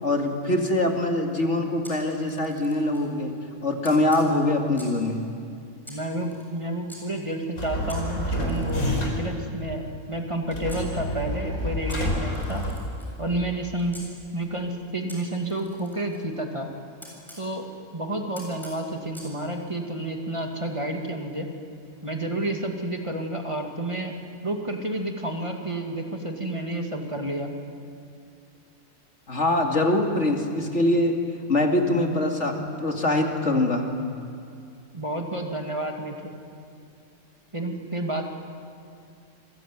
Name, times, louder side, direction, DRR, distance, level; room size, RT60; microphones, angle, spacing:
voice 1, 0.0-3.4 3.6-5.2 29.3-31.2 31.5-33.9, left 1 dB, 55° left, 2 dB, 2.7 m, -23 dB
Camera, 1.8-3.1 3.8-5.1 5.8-7.0 7.9-10.9 11.9-14.1 15.1-17.4 18.3-19.3, equal, ahead, 7.7 m, -48 dB
voice 2, 5.9-12.6 13.2-14.0 14.3-16.7 17.4-17.7 17.9-21.5 22.0-24.2 24.4-27.5 34.9-36.3 37.5-38.3, right 1 dB, 20° right, 2 dB, 2.3 m, -30 dB
sound 1, 7.6-9.4 10.5-13.4, left 1 dB, 85° left, 4.8 m, -29 dB
27.5 x 22.0 x 9.4 m, 2.4 s
omnidirectional pair, 1.4 m